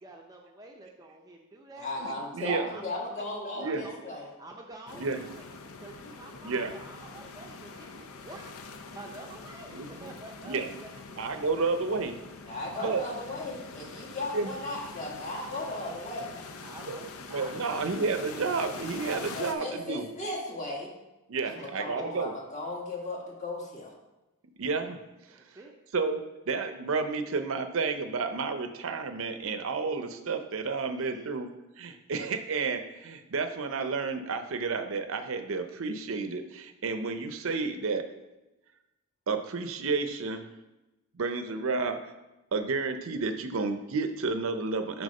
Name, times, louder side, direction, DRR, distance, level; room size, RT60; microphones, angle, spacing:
voice 1, 0.0-1.9 2.4-3.3 3.6-5.4 5.8-8.5 8.9-9.7 10.0-11.4 12.7-13.0 16.6-17.8 25.3-25.7 31.0-31.3, right 2 dB, 15° right, 1 dB, 0.6 m, -48 dB
voice 2, 1.8-4.3 4.9-5.0 5.9-6.4 12.5-16.6 19.3-20.9 21.5-23.9, left 2 dB, 35° left, -2 dB, 1.6 m, -36 dB
voice 3, 2.3-2.7 3.6-3.8 5.0-5.2 6.4-6.7 9.7-10.1 10.4-10.7 11.2-12.1 12.8-13.0 14.3-14.5 16.9-17.0 17.3-20.1 21.3-22.3 24.6-25.0 25.9-31.5 31.8-38.0 39.3-40.5 41.1-42.1 42.5-45.0, right 4 dB, 65° right, 8 dB, 0.6 m, -31 dB
sound 1, 4.9-19.5, left 4 dB, 75° left, 0.7 m, -44 dB
6.4 x 4.7 x 5.3 m, 1.0 s
head